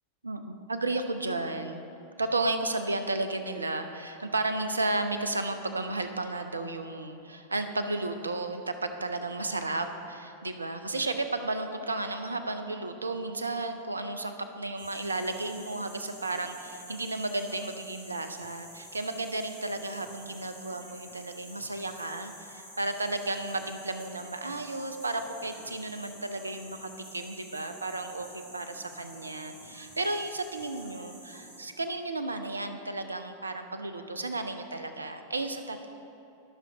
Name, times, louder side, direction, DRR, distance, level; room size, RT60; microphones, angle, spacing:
voice 1, 0.2-1.9 2.2-35.9, right 2 dB, 80° right, 8 dB, 0.5 m, -33 dB
sound 1, 14.8-31.6, equal, 80° left, 2.1 m, -49 dB
14.0 x 6.2 x 2.9 m, 2.9 s
figure-of-eight pair, 90°, 0 cm